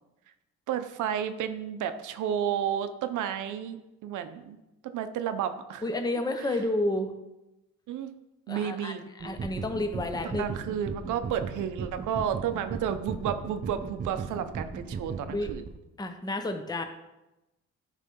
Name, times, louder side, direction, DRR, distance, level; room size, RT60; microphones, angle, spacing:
voice 1, 0.7-3.8 4.0-4.6 4.8-5.8 7.9-8.1 8.5-9.0 10.2-15.6, right 9 dB, 80° right, 9 dB, 0.7 m, -31 dB
voice 2, 5.8-7.1 8.5-10.4 15.3-15.5 16.0-16.8, left 1 dB, 15° left, 6 dB, 0.8 m, -30 dB
sound 1, 9.2-15.8, right 4 dB, 30° right, 0.6 m, -37 dB
9.9 x 3.3 x 5.3 m, 0.96 s
cardioid pair, 90°, 30 cm